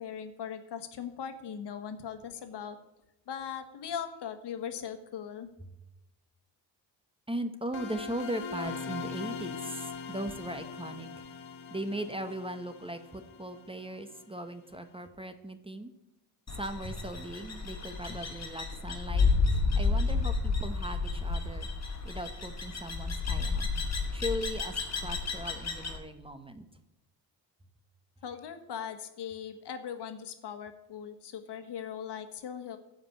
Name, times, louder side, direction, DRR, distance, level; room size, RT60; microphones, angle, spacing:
voice 1, 0.0-2.8 3.3-5.5 28.2-32.8, left 8 dB, 65° left, 9 dB, 1.4 m, -39 dB
voice 2, 7.3-11.3 11.7-15.9 16.6-21.7 22.0-23.6 24.1-26.6, right 1 dB, 10° right, 9 dB, 1.0 m, -38 dB
sound 1, 7.7-14.4, left 6 dB, 85° left, 1.4 m, -41 dB
sound 2, 16.5-26.0, left 4 dB, 35° left, 2.4 m, -31 dB
13.5 x 5.3 x 8.9 m, 0.95 s
cardioid pair, 85°, 44 cm